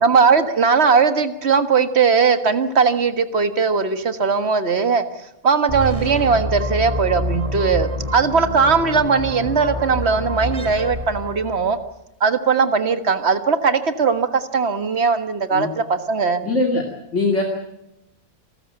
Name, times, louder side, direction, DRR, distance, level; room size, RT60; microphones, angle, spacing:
voice 1, 0.0-11.8 12.2-16.4, right 5 dB, 50° right, 10 dB, 1.7 m, -19 dB
sound 1, 5.7-11.8, equal, 25° right, 2.8 m, -27 dB
voice 2, 16.4-16.8 17.1-17.4, left 2 dB, 55° left, 1 dB, 2.8 m, -20 dB
27.5 x 14.0 x 8.9 m, 0.86 s
omnidirectional pair, 1.5 m